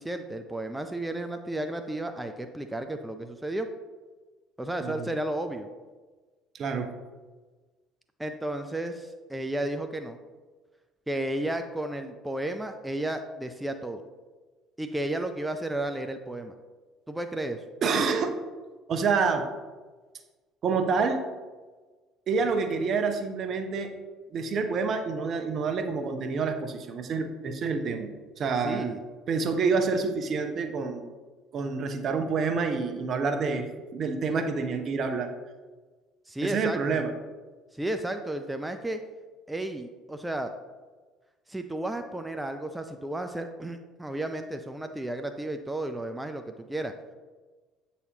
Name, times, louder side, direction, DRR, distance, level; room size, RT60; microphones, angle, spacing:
voice 1, 0.0-3.7 4.6-5.7 8.2-10.2 11.1-14.0 14.8-16.5 17.1-17.6 28.6-29.0 36.3-37.0 37.7-39.0 39.5-40.5 41.5-46.9, right 1 dB, 10° right, 6 dB, 0.5 m, -33 dB
voice 2, 6.5-6.9 17.8-18.3 18.9-19.5 20.6-21.2 22.3-23.9 24.3-28.9 29.3-31.1 31.5-33.7 33.9-35.3 36.4-37.1, right 4 dB, 50° right, 6 dB, 0.7 m, -27 dB
8.1 x 4.2 x 2.8 m, 1.3 s
hypercardioid pair, 55°, 0 cm